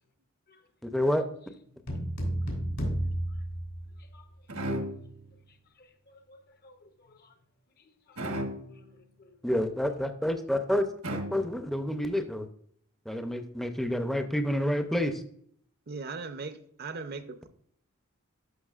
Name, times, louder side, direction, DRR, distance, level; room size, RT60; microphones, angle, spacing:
voice 1, 0.8-1.2 9.4-10.9 11.1-12.5 13.1-15.2, left 1 dB, ahead, 0.5 m, -28 dB
sound 1, 1.9-4.4, right 1 dB, 70° left, 3.1 m, -32 dB
sound 2, 4.5-5.4 8.2-8.9 11.0-11.8, equal, 85° right, 1.3 m, -35 dB
voice 2, 5.3-7.3 7.8-9.7, left 2 dB, 50° left, 0.8 m, -60 dB
voice 3, 15.9-17.5, right 4 dB, 50° right, 0.6 m, -38 dB
12.0 x 5.7 x 2.4 m
head